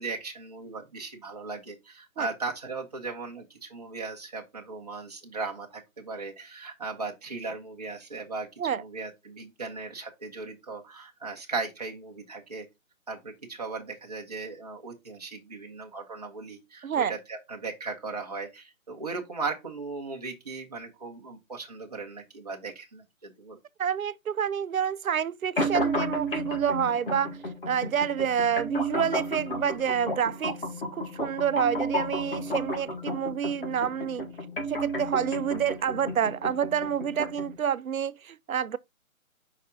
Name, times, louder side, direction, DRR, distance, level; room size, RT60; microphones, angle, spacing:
voice 1, 0.0-12.7 13.1-23.6, right 4 dB, 30° right, 1.2 m, -37 dB
voice 2, 23.8-27.4 27.7-30.6 30.9-34.2 34.7-38.8, right 8 dB, 80° right, 0.7 m, -28 dB
sound 1, 25.6-37.6, equal, 40° left, 2.0 m, -32 dB
5.3 x 4.9 x 3.9 m
hypercardioid pair, 175°, 42 cm